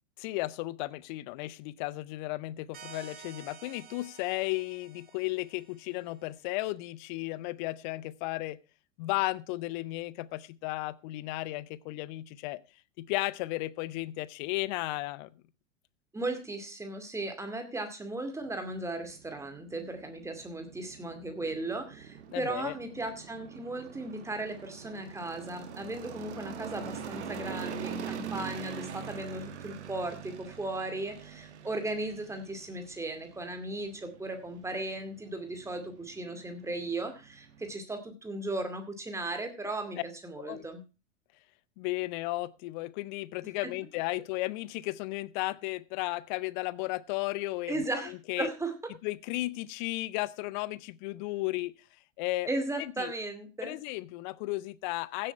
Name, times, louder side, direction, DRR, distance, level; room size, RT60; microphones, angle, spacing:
voice 1, 0.2-8.6 9.0-12.6 13.0-15.3 22.3-22.7 40.0-40.1 40.5-40.7 41.8-48.5 49.0-51.7 52.2-52.5 52.8-53.1 53.6-55.3, left 19 dB, 40° left, 20 dB, 0.6 m, -34 dB
sound 1, 2.7-6.1, right 6 dB, 25° right, 2.6 m, -51 dB
voice 2, 16.1-40.8 43.6-43.7 47.7-48.8 52.5-53.8, right 2 dB, 10° right, 6 dB, 2.3 m, -36 dB
sound 2, 18.4-37.8, right 7 dB, 65° right, 1.6 m, -44 dB
15.5 x 7.7 x 4.4 m, 0.31 s
figure-of-eight pair, 90°, 37 cm